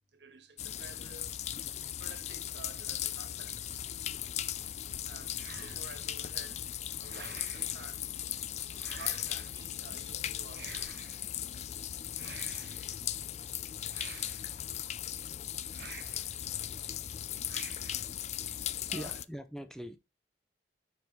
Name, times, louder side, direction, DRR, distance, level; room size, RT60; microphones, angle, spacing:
voice 1, 0.1-3.9 5.0-6.7 6.9-8.1 8.9-11.9 18.9-19.2, right 3 dB, 80° right, 1.5 m, -52 dB
sound 1, 0.6-19.2, left 11 dB, 40° left, 0.3 m, -38 dB
sound 2, 5.3-6.1 7.0-7.8 8.8-9.6 10.5-11.3 12.1-13.0 13.9-14.8 15.7-16.4 17.5-18.2, right 8 dB, 60° right, 0.5 m, -50 dB
voice 2, 18.8-20.0, equal, 5° left, 0.7 m, -42 dB
5.4 x 4.7 x 5.9 m
head